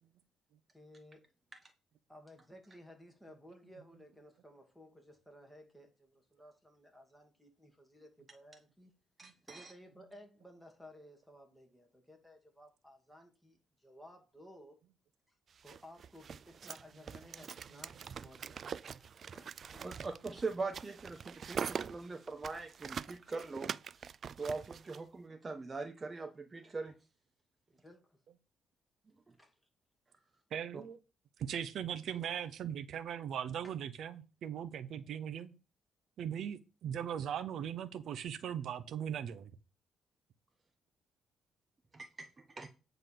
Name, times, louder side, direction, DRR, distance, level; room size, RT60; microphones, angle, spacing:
voice 1, 0.7-1.3 2.1-8.9 9.5-13.6 13.8-14.8 15.6-19.9 27.8-28.2 29.4-29.5 33.6-33.7, left 1 dB, 5° left, 2.7 m, -57 dB
voice 2, 9.2-9.7 19.8-24.1 24.4-27.0 41.9-42.1 42.6-42.7, right 3 dB, 30° right, 1.2 m, -41 dB
sound 1, 15.6-25.0, right 7 dB, 50° right, 0.4 m, -44 dB
voice 3, 30.5-31.0 31.4-35.5 36.2-39.5, right 9 dB, 70° right, 0.8 m, -39 dB
9.2 x 4.0 x 6.9 m
cardioid pair, 90°, 0 cm